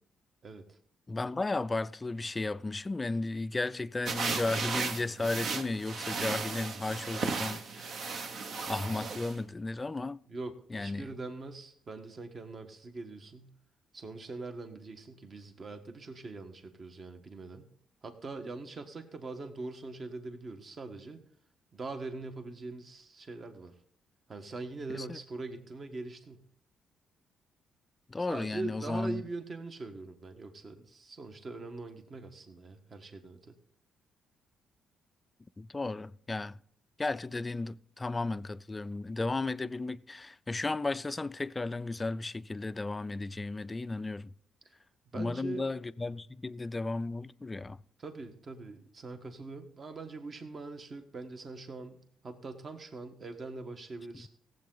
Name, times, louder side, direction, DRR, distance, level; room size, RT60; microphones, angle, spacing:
voice 1, 1.1-8.1 8.7-10.2 10.7-11.1 24.9-25.2 28.1-29.2 35.6-36.6 37.0-44.3 45.1-47.8, left 3 dB, 20° left, 0.4 m, -34 dB
sound 1, 4.0-9.4, right 4 dB, 60° right, 1.1 m, -35 dB
voice 2, 10.3-13.5 13.9-17.6 18.0-21.2 21.7-23.7 24.3-26.4 28.3-33.5 45.1-45.7 48.0-52.0 52.2-54.3, right 3 dB, 40° right, 1.4 m, -42 dB
17.0 x 7.7 x 3.9 m
cardioid pair, 90°, 0 cm